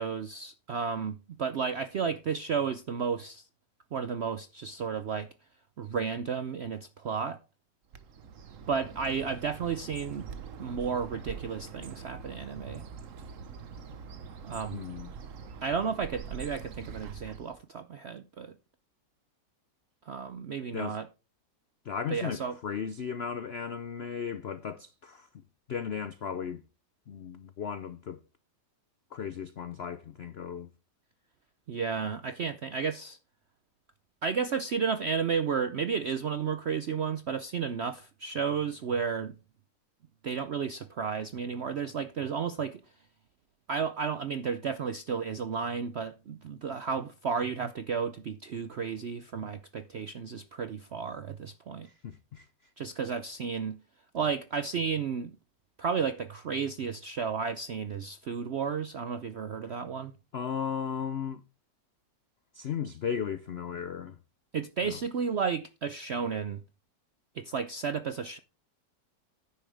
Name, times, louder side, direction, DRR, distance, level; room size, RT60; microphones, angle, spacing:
voice 1, 0.0-3.5 3.9-5.3 5.8-7.4 8.7-10.3 10.6-12.8 14.4-14.8 15.6-18.6 20.1-21.1 22.1-22.6 31.7-33.2 34.2-39.3 40.2-42.8 43.7-51.9 52.8-53.8 54.1-55.4 55.8-60.1 64.5-66.6 67.3-68.4, right 6 dB, 70° right, 0.6 m, -32 dB
Bird, 7.9-17.6, right 6 dB, 50° right, 1.2 m, -44 dB
voice 2, 14.7-15.1 20.7-21.0 21.9-25.3 25.7-26.6 27.1-28.2 29.1-30.7 51.8-52.5 60.3-61.4 62.5-64.1 64.8-64.9, left 7 dB, 70° left, 0.6 m, -36 dB
10.0 x 9.9 x 3.4 m
omnidirectional pair, 1.9 m